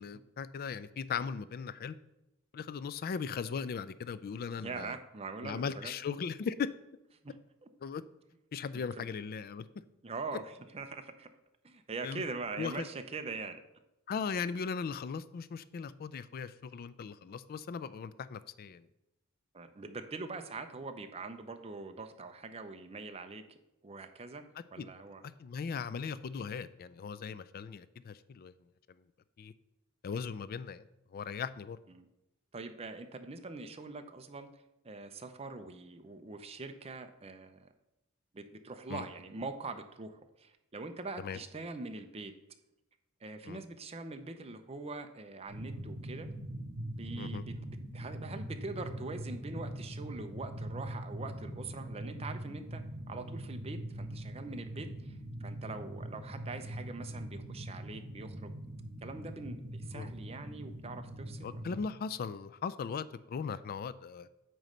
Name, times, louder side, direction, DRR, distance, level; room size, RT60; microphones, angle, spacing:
voice 1, 0.0-2.0 2.5-5.0 5.4-6.7 7.8-8.0 8.5-9.7 12.0-12.2 12.6-12.9 14.1-18.8 24.8-24.9 25.4-28.5 29.4-29.5 30.0-30.8 31.1-31.8 38.9-39.0 41.2-41.4 43.5-43.6 47.2-47.4 59.9-60.1 61.4-64.3, left 6 dB, 45° left, 14 dB, 0.3 m, -38 dB
voice 2, 4.6-5.9 7.2-7.3 7.6-7.7 8.7-9.0 10.0-11.3 11.6-13.6 19.5-23.6 23.8-24.4 24.7-25.2 31.9-32.1 32.5-34.5 34.8-37.7 38.3-42.3 43.2-46.3 46.9-58.5 59.0-61.7, right 3 dB, 30° right, 7 dB, 0.6 m, -43 dB
sound 1, 45.5-61.8, right 1 dB, 55° right, 2.0 m, -42 dB
8.9 x 3.2 x 6.5 m, 0.91 s
head